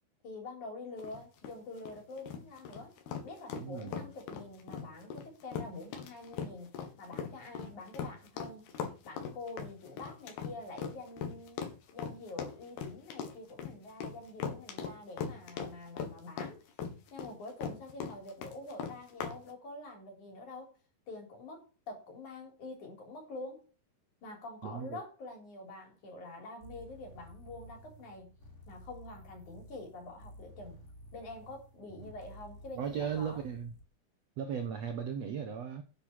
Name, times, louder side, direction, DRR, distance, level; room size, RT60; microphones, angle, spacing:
voice 1, 0.2-3.0 3.2-6.7 7.0-8.7 9.0-11.6 11.9-16.6 17.1-20.7 21.1-23.7 24.2-28.4 28.7-30.8 31.1-33.4, left 2 dB, 50° left, 5.2 m, -46 dB
sound 1, 1.0-19.4, left 6 dB, 75° left, 3.7 m, -40 dB
voice 2, 3.5-4.0 24.6-25.0 32.0-32.1 32.8-33.7 34.4-35.8, right 7 dB, 70° right, 1.5 m, -37 dB
sound 2, 26.6-33.9, equal, 20° left, 2.7 m, -53 dB
10.0 x 8.0 x 6.1 m
omnidirectional pair, 4.7 m